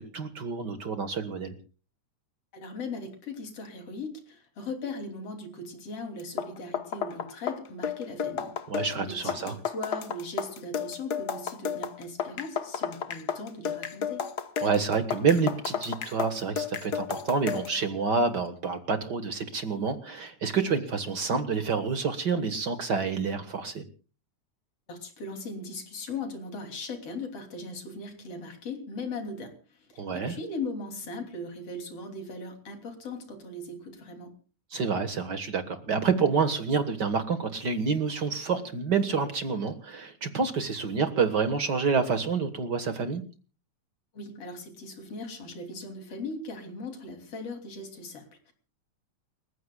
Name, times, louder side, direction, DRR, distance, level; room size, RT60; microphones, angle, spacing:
voice 1, 0.0-1.6 8.7-9.6 14.6-23.8 30.0-30.4 34.7-43.2, right 5 dB, 45° right, 9 dB, 1.5 m, -28 dB
voice 2, 2.5-8.5 9.0-14.2 24.9-34.3 44.1-48.5, left 2 dB, 50° left, 5 dB, 4.0 m, -39 dB
sound 1, 6.2-17.8, left 7 dB, 75° left, 0.9 m, -33 dB
30.0 x 15.5 x 2.3 m, 0.36 s
omnidirectional pair, 3.6 m